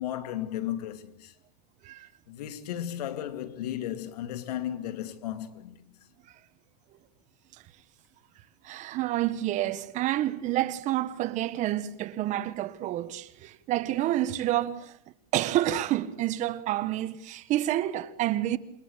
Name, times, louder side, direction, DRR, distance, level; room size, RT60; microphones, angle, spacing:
voice 1, 0.0-1.3 2.3-5.8, left 11 dB, 90° left, 2.6 m, -34 dB
voice 2, 8.6-15.0 15.3-18.6, right 14 dB, 40° right, 1.6 m, -29 dB
28.0 x 22.0 x 8.2 m
supercardioid pair, 145°, 20 cm